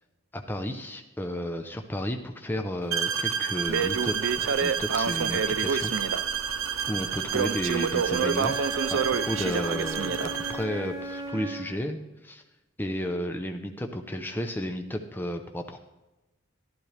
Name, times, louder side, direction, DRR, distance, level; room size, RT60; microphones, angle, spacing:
voice 1, 0.3-5.9 6.9-8.5 8.9-12.4 12.8-15.8, equal, 10° left, 4 dB, 0.6 m, -33 dB
sound 1, 2.9-10.7, right 8 dB, 80° right, 0.9 m, -31 dB
Crackle, 3.7-10.6, right 6 dB, 60° right, 0.4 m, -29 dB
Wind instrument woodwind instrument, 8.1-11.7, right 1 dB, 35° right, 3.1 m, -37 dB
12.0 x 12.0 x 3.3 m, 1.0 s
head